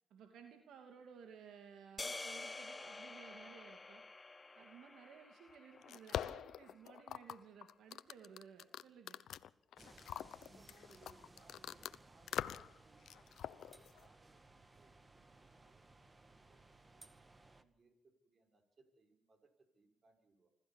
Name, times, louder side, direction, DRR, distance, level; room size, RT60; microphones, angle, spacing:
voice 1, 0.1-4.0 4.5-9.2, right 7 dB, 80° right, 5 dB, 2.7 m, -57 dB
sound 1, 2.0-6.3, left 3 dB, 25° left, 0.7 m, -49 dB
sound 2, 5.5-12.0 12.3-12.8 13.1-14.1, left 10 dB, 75° left, 0.9 m, -44 dB
sound 3, 9.8-17.6, right 2 dB, 20° right, 1.9 m, -62 dB
voice 2, 10.4-17.1 17.6-20.5, right 3 dB, 45° right, 6 dB, 5.8 m, -70 dB
26.0 x 14.5 x 7.3 m, 0.89 s
cardioid pair, 80°, 0 cm